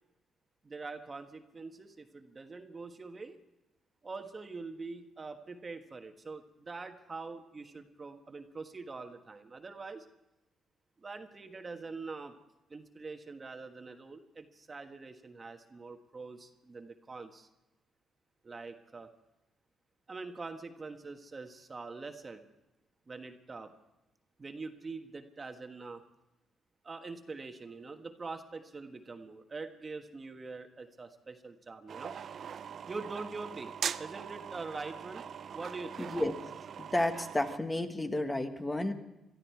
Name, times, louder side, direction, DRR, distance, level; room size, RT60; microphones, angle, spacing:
voice 1, 0.6-3.4 4.0-10.1 11.0-12.3 12.7-17.5 18.4-19.1 20.1-22.4 23.1-23.7 24.4-26.0 26.8-32.1 32.9-33.7 34.0-35.2 35.5-36.2, right 3 dB, 30° right, 6 dB, 1.4 m, -44 dB
sound 1, 31.9-37.6, right 7 dB, 55° right, 0.5 m, -41 dB
voice 2, 36.8-38.9, left 1 dB, 15° left, 6 dB, 1.5 m, -31 dB
22.5 x 13.0 x 4.6 m, 0.95 s
cardioid pair, 90°, 0 cm